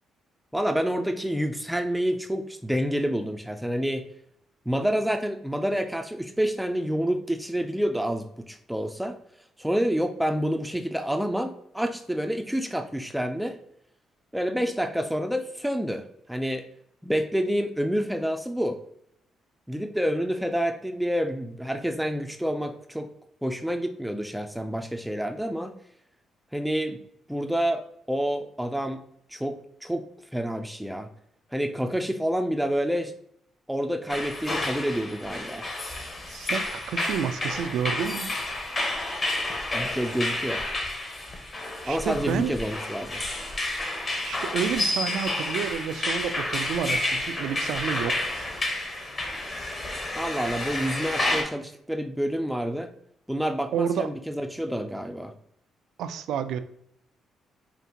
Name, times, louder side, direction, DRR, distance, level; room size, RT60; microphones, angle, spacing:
voice 1, 0.5-4.1 4.7-9.2 9.6-13.6 14.3-16.7 17.0-18.8 19.7-23.1 23.4-25.7 26.5-27.0 27.3-27.8 28.1-29.0 29.3-30.1 30.3-31.1 31.5-33.1 33.7-35.7 39.7-40.6 41.8-43.2 50.2-52.9 53.3-55.3, equal, 5° right, 6 dB, 0.4 m, -28 dB
sound 1, 34.1-51.4, left 2 dB, 35° left, 1.0 m, -30 dB
voice 2, 36.3-38.3 41.8-42.6 44.2-48.6 53.7-54.1 56.0-56.6, right 8 dB, 80° right, 10 dB, 0.3 m, -30 dB
5.1 x 2.5 x 2.8 m, 0.72 s
cardioid pair, 90°, 0 cm